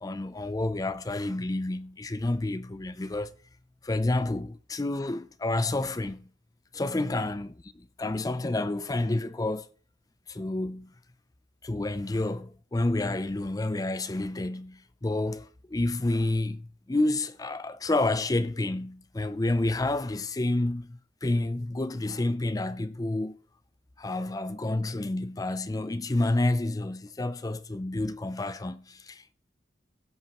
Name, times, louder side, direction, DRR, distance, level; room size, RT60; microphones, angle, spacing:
voice 1, 0.0-3.4 3.8-6.3 6.7-9.7 10.3-10.9 11.6-23.4 24.0-29.3, left 2 dB, 20° left, 0.4 m, -29 dB
16.5 x 8.1 x 3.0 m
head